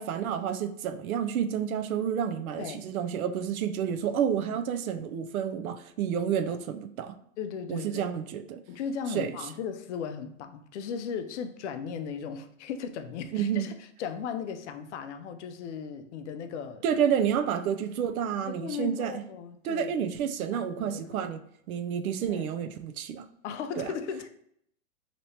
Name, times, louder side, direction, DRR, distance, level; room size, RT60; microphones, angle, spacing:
voice 1, 0.0-7.1 7.7-8.6 9.1-9.4 13.3-13.7 16.8-19.2 19.6-21.4 21.7-23.3 23.8-23.9, right 8 dB, 90° right, 0.5 m, -30 dB
voice 2, 6.1-6.6 7.4-8.1 8.7-13.7 14.0-16.8 18.5-19.9 20.5-21.2 22.3-22.5 23.4-24.3, left 6 dB, 60° left, 0.5 m, -37 dB
3.1 x 2.9 x 2.8 m
hypercardioid pair, 140°, 42 cm